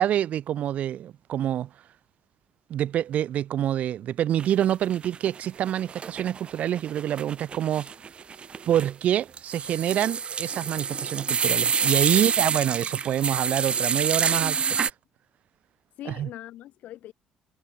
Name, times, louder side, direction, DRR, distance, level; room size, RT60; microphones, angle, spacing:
voice 1, 0.0-1.7 2.7-7.9 8.7-14.6 16.1-16.3, right 11 dB, 65° right, 0.5 m, -26 dB
sound 1, 4.4-5.4 5.7-14.9, right 6 dB, 45° right, 1.6 m, -27 dB
voice 2, 11.8-12.3 16.0-17.1, left 13 dB, 75° left, 3.6 m, -42 dB
cardioid pair, 80°, 3 cm